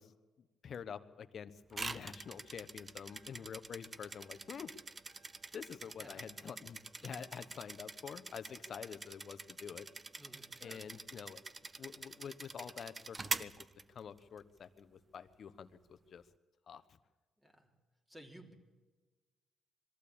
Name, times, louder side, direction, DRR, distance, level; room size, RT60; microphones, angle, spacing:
voice 1, 0.0-4.7 5.5-9.9 10.6-11.4 11.8-13.5 13.9-16.2 16.7-17.0, left 7 dB, 55° left, 12 dB, 1.0 m, -48 dB
sound 1, 1.7-14.4, right 3 dB, 25° right, 0.7 m, -46 dB
sound 2, 2.0-2.7 3.1-3.7 4.1-4.8 5.1-6.7 7.1-7.7, right 3 dB, 45° right, 1.8 m, -71 dB
voice 2, 10.2-10.8 17.4-17.7 18.1-18.5, right 1 dB, 10° right, 2 dB, 3.3 m, -56 dB
22.0 x 14.0 x 8.7 m, 1.3 s
cardioid pair, 90°, 0 cm